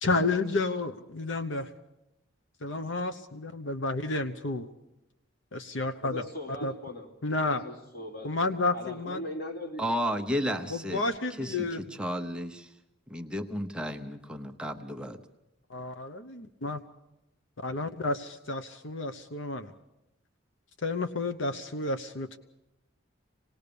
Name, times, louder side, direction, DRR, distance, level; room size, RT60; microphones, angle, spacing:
voice 1, 0.0-1.7 2.6-4.7 5.5-6.2 6.6-6.7 7.2-7.6 8.2-9.2 10.7-11.8 15.7-16.8 17.6-19.7 20.8-22.4, left 3 dB, 70° left, 1.0 m, -31 dB
voice 2, 6.0-7.1 7.5-9.9, left 1 dB, 50° left, 3.1 m, -40 dB
voice 3, 9.8-11.0 11.3-12.8 13.1-15.2, equal, 5° right, 0.9 m, -33 dB
26.5 x 19.5 x 6.9 m
head